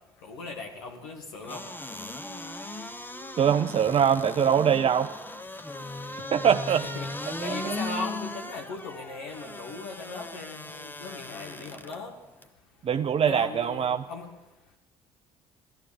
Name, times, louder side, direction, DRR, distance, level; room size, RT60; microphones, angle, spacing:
voice 1, 0.2-1.6 6.8-12.1 13.2-14.3, left 3 dB, 70° left, 0 dB, 1.8 m, -38 dB
sound 1, 1.4-12.0 12.4-12.5, left 2 dB, 10° left, 1.1 m, -38 dB
voice 2, 3.4-5.1 6.3-6.9 7.4-7.8 12.8-14.0, right 8 dB, 35° right, 8 dB, 0.6 m, -23 dB
16.0 x 13.0 x 7.0 m, 0.96 s
figure-of-eight pair, 50°, 18 cm